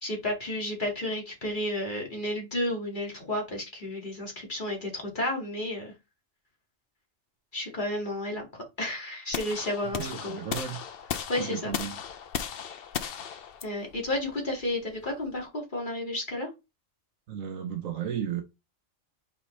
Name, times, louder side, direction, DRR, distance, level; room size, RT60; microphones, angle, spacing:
voice 1, 0.0-5.9 7.5-10.7 11.3-11.7 13.6-16.5, left 1 dB, 35° left, 2.6 m, -32 dB
sound 1, 9.3-15.4, left 7 dB, 55° left, 0.8 m, -36 dB
voice 2, 10.0-10.8 11.4-12.0 17.3-18.4, right 8 dB, 80° right, 1.3 m, -34 dB
5.9 x 5.2 x 3.3 m
omnidirectional pair, 1.4 m